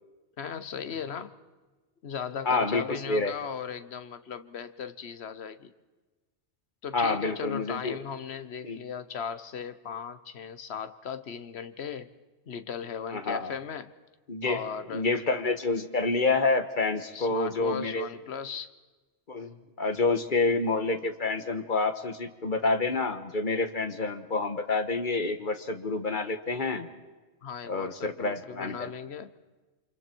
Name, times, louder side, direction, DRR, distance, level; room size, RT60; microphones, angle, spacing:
voice 1, 0.4-1.3 2.0-5.7 6.8-12.1 12.5-13.9 14.4-15.1 17.1-18.7 27.4-29.3, left 7 dB, 65° left, 12 dB, 1.3 m, -37 dB
voice 2, 2.4-3.3 6.9-8.0 8.6-8.8 13.1-13.5 14.3-14.6 14.9-18.1 19.3-26.9 27.6-28.9, left 3 dB, 45° left, 8 dB, 1.5 m, -28 dB
29.5 x 25.5 x 4.6 m, 1.3 s
omnidirectional pair, 1.2 m